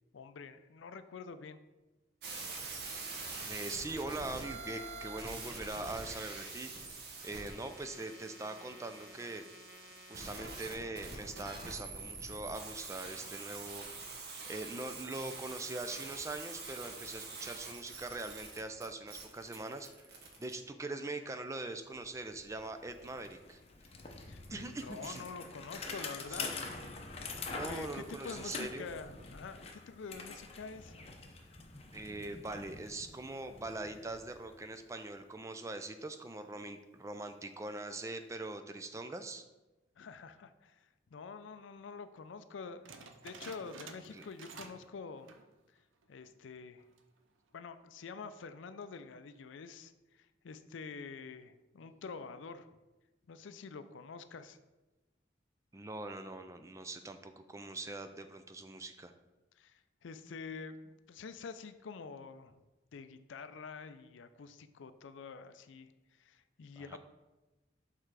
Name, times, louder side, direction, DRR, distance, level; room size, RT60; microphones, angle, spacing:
voice 1, 0.1-1.6 24.3-26.6 27.6-31.0 40.0-45.3 46.1-46.8 47.5-52.7 53.3-54.6 59.6-62.6 62.9-67.0, left 5 dB, 75° left, 11 dB, 0.4 m, -47 dB
sound 1, 2.2-20.5, right 3 dB, 55° right, 1.1 m, -45 dB
voice 2, 3.4-6.7 7.2-9.4 10.1-13.8 14.5-23.6 24.5-25.2 26.3-26.4 27.5-28.9 31.9-39.4 44.1-44.2 55.7-59.1 66.8-67.0, right 2 dB, 15° right, 8 dB, 0.3 m, -42 dB
Bicycle, 21.6-21.7 21.9-34.8, left 4 dB, 30° left, 0.7 m, -46 dB
sound 2, 42.9-44.9 45.2-45.5 46.0-46.1 46.8-47.2, right 4 dB, 85° right, 0.6 m, -51 dB
6.6 x 3.7 x 4.6 m, 1.1 s
head